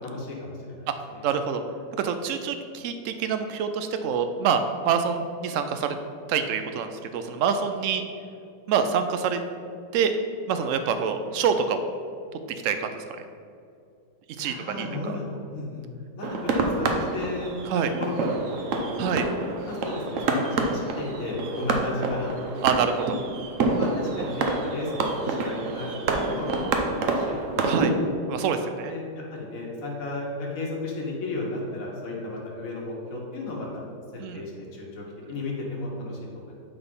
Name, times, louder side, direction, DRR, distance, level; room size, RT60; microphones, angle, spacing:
voice 1, 0.0-1.2 14.3-15.8 16.1-18.3 18.6-19.2 19.4-22.3 23.7-27.8 28.1-28.2 28.9-33.8 34.1-36.6, left 2 dB, 50° left, -2 dB, 1.7 m, -34 dB
voice 2, 1.2-1.6 2.0-6.0 6.3-8.0 8.7-9.4 9.9-10.2 10.5-11.9 12.6-13.1 14.4-15.1 17.7-17.9 19.0-19.3 22.6-23.2 27.6-27.9 28.3-28.9 34.2-34.4, right 6 dB, 80° right, 8 dB, 0.7 m, -26 dB
sound 1, 16.2-27.9, right 3 dB, 60° right, 0.9 m, -27 dB
8.7 x 4.1 x 5.4 m, 2.4 s
omnidirectional pair, 1.9 m